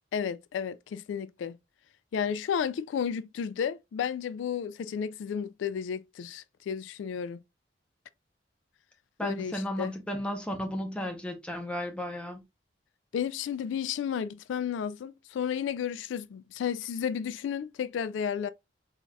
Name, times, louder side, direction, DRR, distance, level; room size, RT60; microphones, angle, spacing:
voice 1, 0.1-1.6 2.1-7.4 9.2-9.9 13.1-18.5, left 7 dB, 90° left, 0.3 m, -32 dB
voice 2, 9.2-12.4, equal, 5° left, 0.8 m, -34 dB
3.9 x 3.4 x 2.3 m
head